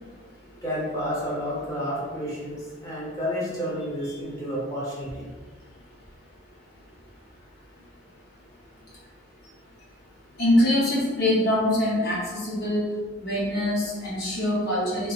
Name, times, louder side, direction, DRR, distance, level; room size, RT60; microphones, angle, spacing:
voice 1, 0.6-5.3, equal, 15° left, -6 dB, 0.8 m, -30 dB
voice 2, 10.4-12.9 13.2-15.1, left 1 dB, 50° left, -6 dB, 0.9 m, -24 dB
3.0 x 2.1 x 3.2 m, 1.4 s
head